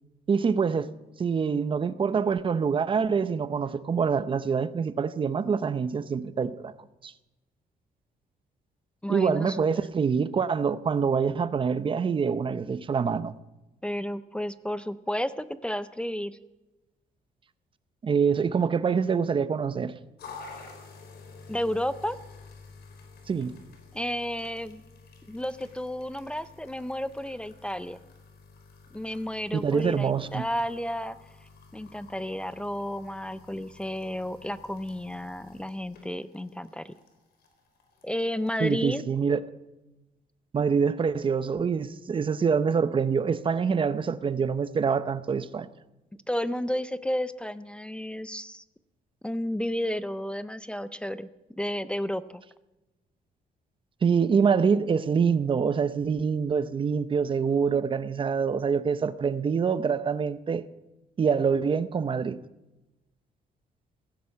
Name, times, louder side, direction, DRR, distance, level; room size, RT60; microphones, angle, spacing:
voice 1, 0.3-0.9 1.2-6.7 7.0-7.1 9.1-13.3 18.0-19.9 23.3-23.5 29.5-30.4 38.6-39.4 40.5-45.7 54.0-60.6 61.2-62.4, right 6 dB, 30° right, 0.7 m, -25 dB
voice 2, 9.0-9.7 13.8-16.4 21.5-22.2 23.9-24.8 25.3-28.0 28.9-31.2 31.7-36.9 38.0-39.0 46.3-48.6 49.2-51.3 51.6-52.4, equal, 5° left, 0.5 m, -32 dB
sound 1, 20.2-39.0, left 4 dB, 80° left, 3.9 m, -50 dB
16.0 x 15.5 x 5.7 m
cardioid pair, 145°, 16 cm